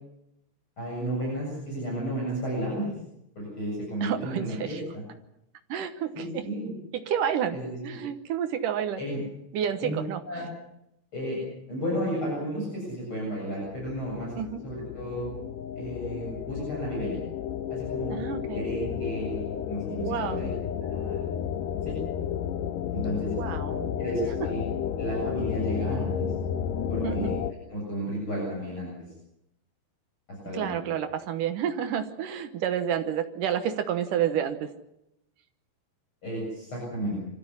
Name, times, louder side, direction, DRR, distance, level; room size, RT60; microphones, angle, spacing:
voice 1, 0.8-2.9 3.3-5.0 6.1-6.7 7.5-7.8 9.0-9.2 9.8-10.0 10.2-10.4 11.1-11.4 11.7-14.3 14.6-15.3 15.7-17.2 17.7-18.2 18.5-20.5 20.8-21.3 21.8-21.9 22.9-23.3 24.0-24.6 25.0-26.3 26.9-27.4 27.7-28.9 30.3-31.0 36.2-37.3, equal, 25° left, -4 dB, 8.5 m, -33 dB
voice 2, 4.0-4.8 5.7-6.5 6.9-7.6 7.8-9.0 9.5-10.4 14.3-14.6 18.1-18.6 20.0-20.5 23.4-23.9 24.2-24.3 27.0-27.3 30.5-34.7, right 9 dB, 65° right, 9 dB, 2.2 m, -30 dB
sound 1, 13.7-27.5, left 9 dB, 80° left, 1.9 m, -32 dB
25.5 x 14.5 x 9.8 m, 0.82 s
omnidirectional pair, 5.1 m